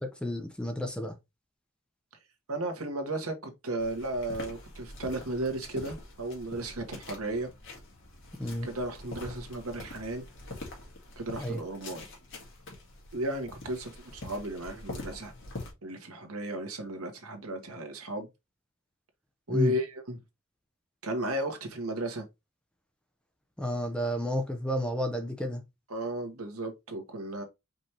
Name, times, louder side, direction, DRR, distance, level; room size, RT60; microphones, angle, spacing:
voice 1, 0.0-1.2 8.4-8.7 11.4-11.6 19.5-19.8 23.6-25.6, equal, 5° left, 0.7 m, -31 dB
voice 2, 2.5-7.5 8.6-10.2 11.2-12.0 13.1-15.3 15.8-18.3 19.5-20.2 21.0-22.2 25.9-27.4, right 1 dB, 85° right, 1.4 m, -34 dB
sound 1, 3.8-15.7, left 2 dB, 60° left, 2.0 m, -45 dB
5.1 x 3.3 x 2.9 m
head